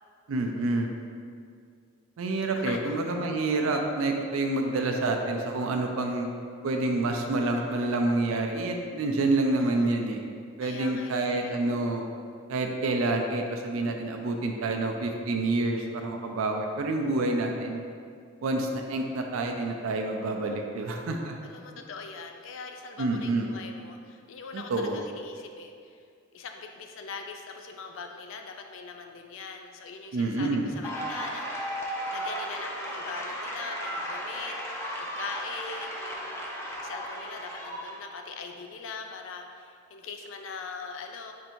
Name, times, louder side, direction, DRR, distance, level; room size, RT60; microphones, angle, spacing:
voice 1, 0.3-0.9 2.2-6.3 6.6-10.2 10.6-12.1 12.5-17.8 18.4-21.3 23.0-23.5 24.5-25.0 30.1-30.7, right 2 dB, 90° right, 3 dB, 0.4 m, -28 dB
voice 2, 2.5-3.1 9.5-10.0 10.6-11.5 21.4-26.0 26.3-31.5 32.1-36.4 36.8-41.3, left 4 dB, 75° left, 4 dB, 0.4 m, -42 dB
sound 1, 30.8-38.1, equal, 10° left, 0.4 m, -35 dB
4.5 x 2.6 x 4.3 m, 2.2 s
head